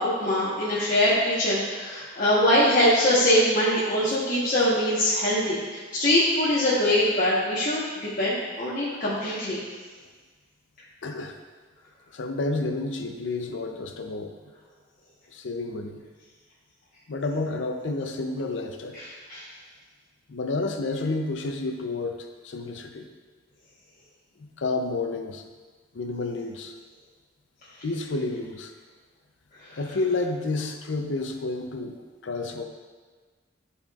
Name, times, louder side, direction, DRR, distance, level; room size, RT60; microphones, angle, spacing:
voice 1, 0.0-9.6 18.9-19.4 29.6-29.8, left 1 dB, 45° left, -9 dB, 1.1 m, -23 dB
voice 2, 11.0-11.3 12.1-14.3 15.3-16.0 17.1-19.0 20.3-23.0 24.6-25.4 25.9-26.7 27.8-28.7 29.8-32.6, left 3 dB, 80° left, 5 dB, 0.6 m, -30 dB
12.0 x 4.3 x 2.4 m, 1.4 s
head